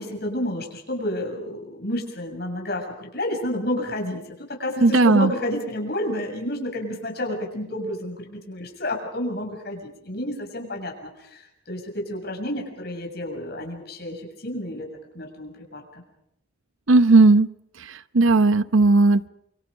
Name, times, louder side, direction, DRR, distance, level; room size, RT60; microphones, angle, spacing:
voice 1, 0.0-14.9 15.1-15.8, left 1 dB, 50° left, 2 dB, 7.2 m, -30 dB
voice 2, 4.8-5.3 16.9-17.5 18.1-19.3, right 3 dB, 85° right, 14 dB, 0.8 m, -15 dB
28.0 x 26.0 x 5.2 m, 0.78 s
head